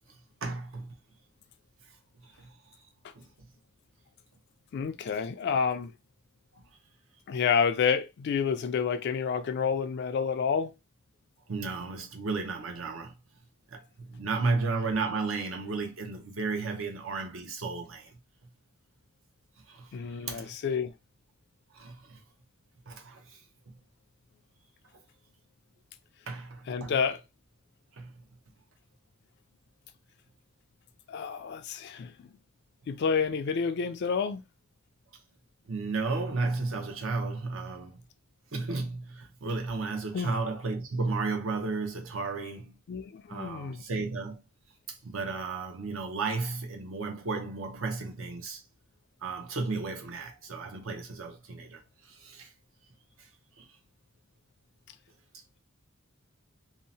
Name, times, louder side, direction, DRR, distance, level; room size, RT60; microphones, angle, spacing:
voice 1, 0.4-1.0 2.4-2.5 3.1-3.3 5.1-5.2 11.5-13.1 13.7-18.2 19.7-20.5 21.7-22.2 22.9-23.4 26.3-26.9 27.9-28.1 35.7-38.0 38.5-42.8 43.3-44.4 45.0-48.6 49.2-52.5 53.6-53.7, right 3 dB, 75° right, 0.7 m, -33 dB
voice 2, 4.7-5.9 7.3-10.7 19.9-20.9 26.7-27.2 31.1-32.3 32.9-34.4 40.1-40.3 42.9-43.8, left 6 dB, 55° left, 0.3 m, -29 dB
2.7 x 2.0 x 2.6 m
head